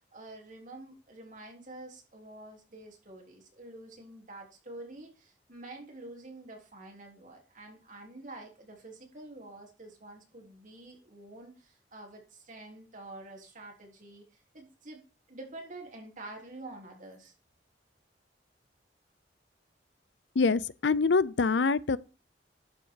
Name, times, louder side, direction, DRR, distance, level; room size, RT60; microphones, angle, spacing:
voice 1, 0.0-15.0 15.3-17.3, right 2 dB, 45° right, 3.6 m, -48 dB
voice 2, 20.4-22.0, left 4 dB, 85° left, 0.6 m, -25 dB
12.0 x 6.4 x 4.7 m
head